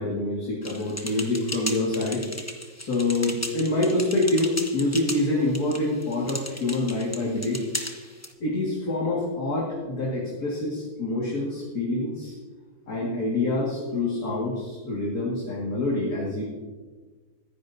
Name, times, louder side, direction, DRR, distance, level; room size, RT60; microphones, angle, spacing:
voice 1, 0.0-2.2 2.8-7.6 8.4-12.3 12.9-16.4, left 2 dB, 45° left, -4 dB, 2.4 m, -26 dB
sound 1, 0.6-8.3, left 1 dB, 20° left, 0.4 m, -36 dB
24.5 x 10.0 x 2.7 m, 1.4 s
omnidirectional pair, 2.2 m